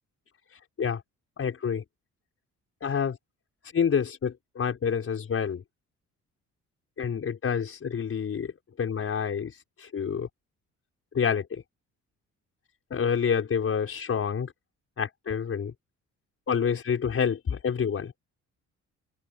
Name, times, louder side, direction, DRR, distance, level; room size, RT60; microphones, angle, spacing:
voice 1, 0.5-1.0 1.4-1.8 2.8-3.2 3.7-5.6 7.0-8.5 8.8-10.3 11.1-11.6 12.9-14.5 15.0-15.7 16.5-18.1, left 7 dB, 50° left, 4.8 m, -28 dB
open air
cardioid pair, 90°, 30 cm